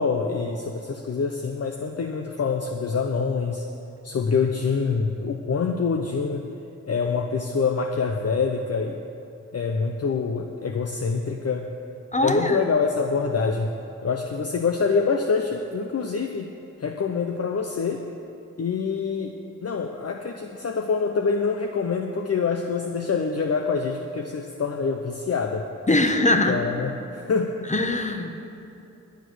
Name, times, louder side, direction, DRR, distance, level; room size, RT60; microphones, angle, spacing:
voice 1, 0.0-3.7 4.0-6.4 6.9-9.0 9.5-11.7 12.2-13.7 14.0-16.5 16.8-18.0 18.6-19.3 19.6-25.7 26.5-27.7 28.0-28.2, left 5 dB, 50° left, 4 dB, 0.8 m, -25 dB
voice 2, 12.1-12.6 25.9-26.6 27.7-28.3, left 2 dB, 25° left, 5 dB, 1.1 m, -21 dB
11.5 x 9.2 x 6.3 m, 2.9 s
cardioid pair, 50°, 31 cm